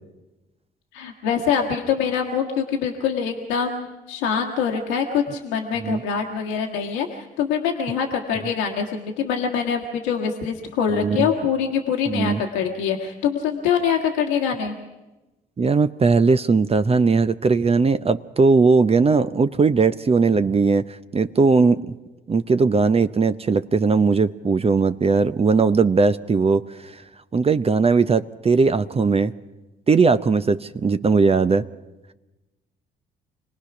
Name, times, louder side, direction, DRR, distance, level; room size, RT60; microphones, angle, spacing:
voice 1, 0.9-14.8, left 7 dB, 90° left, 1 dB, 1.5 m, -24 dB
voice 2, 10.9-11.3 12.1-12.4 15.6-21.9 22.3-26.9 27.3-29.3 29.9-31.7, right 4 dB, 30° right, 12 dB, 0.7 m, -19 dB
26.0 x 18.5 x 6.0 m, 1.1 s
hypercardioid pair, 55°, 21 cm